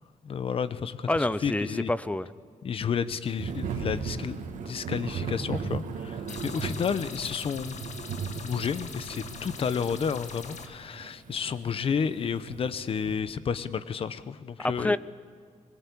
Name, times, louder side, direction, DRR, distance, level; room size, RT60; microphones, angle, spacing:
voice 1, 0.2-1.1 1.4-1.9 2.6-7.8 8.4-15.0, left 6 dB, 45° left, 14 dB, 0.9 m, -31 dB
voice 2, 1.1-2.3 6.3-6.4 14.6-15.0, left 1 dB, 10° left, 17 dB, 0.5 m, -28 dB
Thunder / Rain, 3.4-13.2, right 6 dB, 75° right, 2.2 m, -37 dB
sound 1, 6.3-10.7, left 5 dB, 60° left, 1.8 m, -42 dB
23.5 x 21.0 x 8.5 m, 2.1 s
wide cardioid pair, 160°, 13 cm